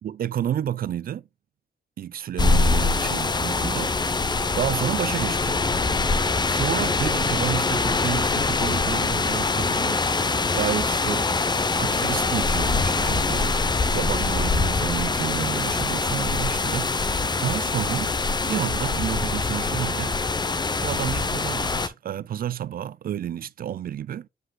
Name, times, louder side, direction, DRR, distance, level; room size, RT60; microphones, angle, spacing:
voice 1, 0.0-1.2 2.0-3.9 4.5-5.6 6.4-10.0 10.5-11.3 11.8-13.6 13.9-17.1 17.4-18.1 18.4-20.2 20.8-24.3, right 10 dB, 55° right, 0.4 m, -30 dB
sound 1, 2.4-21.9, left 3 dB, 25° left, 0.6 m, -24 dB
7.8 x 7.7 x 2.2 m
wide cardioid pair, 115°, 18 cm